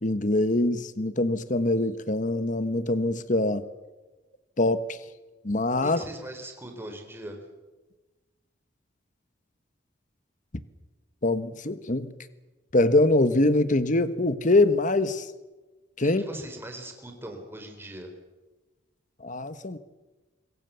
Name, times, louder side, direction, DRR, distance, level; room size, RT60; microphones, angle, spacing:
voice 1, 0.0-3.6 4.6-4.9 5.4-6.0 11.2-12.1 12.7-15.3 16.0-16.2 19.2-19.8, left 2 dB, 45° left, 1.3 m, -23 dB
voice 2, 5.8-7.4 16.0-18.1, right 1 dB, 10° right, 4.2 m, -40 dB
26.0 x 23.5 x 7.0 m
head